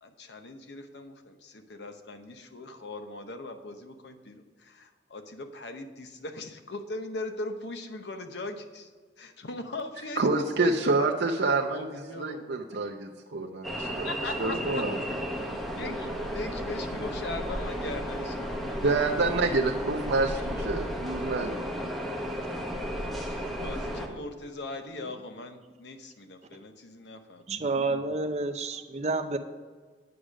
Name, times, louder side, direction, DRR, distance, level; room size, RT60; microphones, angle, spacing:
voice 1, 0.0-8.9 9.2-11.1 11.7-12.5 14.0-14.8 15.1-18.8 19.2-19.4 20.0-20.7 23.6-27.5, left 2 dB, 75° left, 7 dB, 0.9 m, -40 dB
voice 2, 10.2-14.1 14.4-15.0 18.8-21.7, right 3 dB, 75° right, 1 dB, 0.7 m, -27 dB
sound 1, 13.6-24.1, equal, ahead, 1.0 m, -33 dB
voice 3, 27.5-29.4, right 3 dB, 40° right, 8 dB, 0.6 m, -29 dB
9.5 x 5.0 x 6.3 m, 1.5 s
head